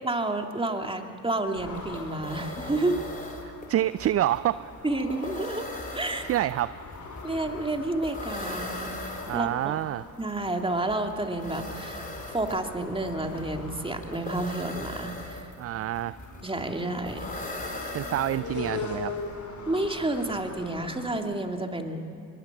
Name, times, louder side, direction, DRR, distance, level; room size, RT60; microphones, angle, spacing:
voice 1, 0.0-3.0 4.8-5.7 5.9-6.3 7.2-9.8 10.2-15.5 16.4-17.3 19.7-22.1, right 2 dB, 10° right, 4 dB, 2.5 m, -30 dB
sound 1, 1.5-21.2, left 4 dB, 40° left, 4.2 m, -42 dB
sound 2, 1.5-1.6 1.8-18.9, left 2 dB, 20° left, 4.1 m, -39 dB
voice 2, 3.4-4.7 6.3-6.8 9.3-10.1 15.6-16.2 17.9-19.2, right 13 dB, 35° right, 17 dB, 0.5 m, -27 dB
23.5 x 21.5 x 6.0 m, 2.8 s
hypercardioid pair, 60°, 44 cm